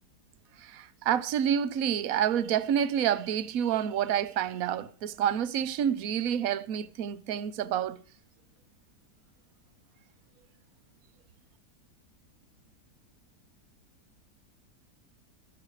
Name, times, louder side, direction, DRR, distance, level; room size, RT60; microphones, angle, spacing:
voice 1, 0.6-8.0, right 9 dB, 60° right, 1.2 m, -28 dB
14.5 x 13.5 x 4.8 m
omnidirectional pair, 1.8 m